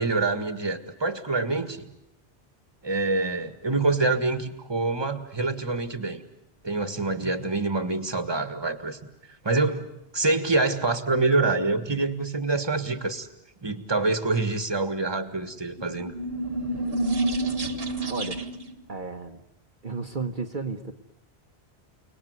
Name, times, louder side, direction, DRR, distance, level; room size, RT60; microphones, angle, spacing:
voice 1, 0.0-1.9 2.8-6.2 6.6-9.0 9.4-13.3 13.6-16.1, right 3 dB, 25° right, 10 dB, 1.7 m, -26 dB
sound 1, 15.8-18.7, right 2 dB, 65° right, 1.9 m, -29 dB
voice 2, 18.1-18.4 18.9-19.4 19.8-20.9, right 4 dB, 50° right, 3 dB, 1.3 m, -33 dB
30.0 x 20.0 x 9.6 m, 0.86 s
omnidirectional pair, 1.1 m